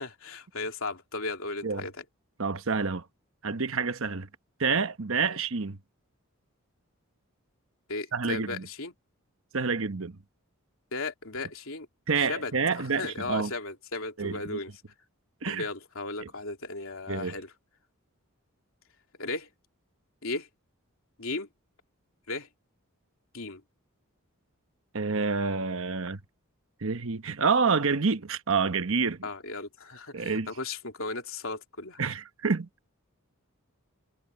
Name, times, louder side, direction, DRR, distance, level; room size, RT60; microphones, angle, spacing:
voice 1, 0.0-2.0 5.3-5.4 7.9-8.9 10.9-11.9 12.3-14.7 15.4-17.5 19.2-19.5 20.2-20.5 21.2-21.5 22.3-22.5 23.3-23.6 29.2-32.0, left 3 dB, 65° left, 3.2 m, -36 dB
voice 2, 2.4-3.0 3.4-4.3 4.6-5.8 8.1-8.7 9.5-10.2 12.1-13.5 14.2-14.6 15.4-15.6 16.2-16.3 17.1-17.4 24.9-26.2 26.8-29.3 30.1-30.5 32.0-32.7, right 5 dB, 65° right, 1.1 m, -28 dB
head